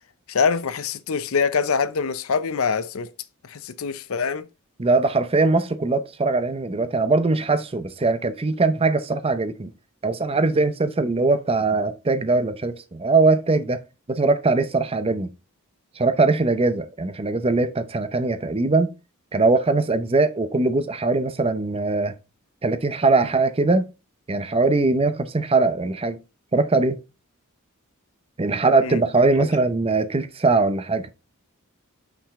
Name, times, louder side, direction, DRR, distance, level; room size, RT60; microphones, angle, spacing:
voice 1, 0.3-3.1 3.4-4.5 28.8-29.0 29.4-29.5, left 5 dB, 70° left, 0.6 m, -24 dB
voice 2, 4.8-9.7 10.0-13.8 14.1-15.3 16.0-18.9 19.3-22.1 22.6-23.9 24.3-26.2 26.5-27.0 28.4-31.1, right 3 dB, 25° right, 0.6 m, -21 dB
5.8 x 5.2 x 3.6 m
head